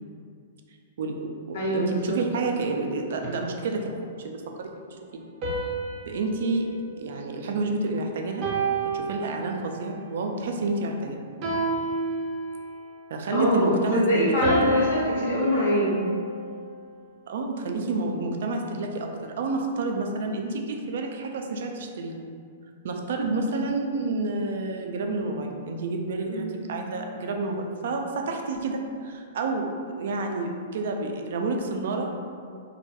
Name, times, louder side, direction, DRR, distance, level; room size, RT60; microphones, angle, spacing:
voice 1, 1.0-5.2 6.1-6.7 6.9-8.5 8.9-11.2 13.1-14.6 17.3-22.3 22.8-29.7 30.0-32.1, right 3 dB, 70° right, 3 dB, 0.3 m, -29 dB
voice 2, 1.5-2.2 13.3-16.0 26.2-26.5, equal, 65° left, -6 dB, 0.8 m, -24 dB
sound 1, 5.4-7.8 8.4-9.9 11.4-12.9 14.4-16.7, right 2 dB, 45° right, 0.7 m, -30 dB
2.3 x 2.2 x 2.8 m, 2.2 s
hypercardioid pair, 130°, 0 cm